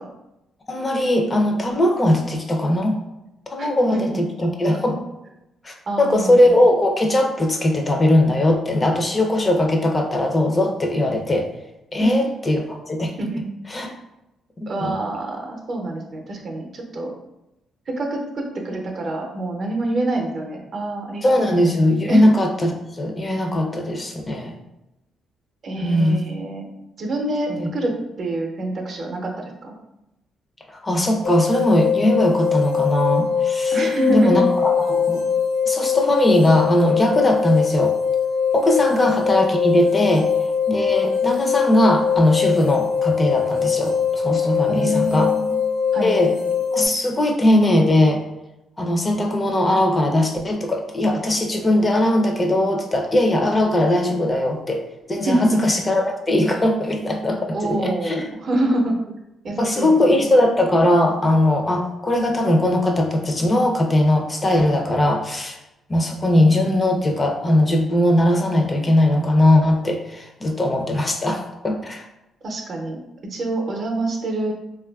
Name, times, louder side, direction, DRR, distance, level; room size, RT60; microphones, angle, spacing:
voice 1, 0.7-3.0 3.5-4.1 4.4-5.0 5.6-11.5 11.9-13.1 13.7-13.9 14.6-15.0 21.2-24.5 25.8-26.2 27.5-27.7 30.7-33.8 34.1-35.2 35.7-37.9 38.5-40.3 40.7-45.3 46.0-46.3 46.7-48.2 48.8-54.8 55.1-58.3 59.6-65.6 65.9-72.1, left 1 dB, 25° left, 2 dB, 0.4 m, -19 dB
voice 2, 3.6-4.3 5.9-6.6 12.0-12.2 13.2-13.4 14.7-17.1 17.9-21.7 22.0-22.2 25.6-26.7 27.0-29.8 33.7-34.4 38.9-39.0 44.7-45.5 45.9-46.1 55.2-55.6 57.5-58.9 59.4-60.2 72.4-73.0 73.2-74.5, right 1 dB, 50° right, 2 dB, 0.6 m, -26 dB
sound 1, 31.2-46.9, left 7 dB, 75° left, 0.6 m, -22 dB
3.1 x 2.3 x 2.2 m, 0.92 s
cardioid pair, 90°, 0 cm